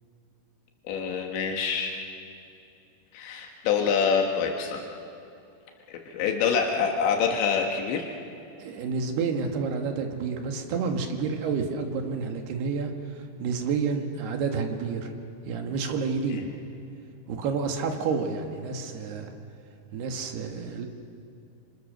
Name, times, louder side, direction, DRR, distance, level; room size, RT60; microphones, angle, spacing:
voice 1, 0.9-2.0 3.1-4.8 5.9-8.1, left 6 dB, 90° left, 2 dB, 4.0 m, -26 dB
voice 2, 8.6-15.1 15.4-16.5 17.3-19.3 19.9-20.9, right 5 dB, 70° right, 4 dB, 3.7 m, -29 dB
28.5 x 27.5 x 6.7 m, 2.7 s
omnidirectional pair, 5.1 m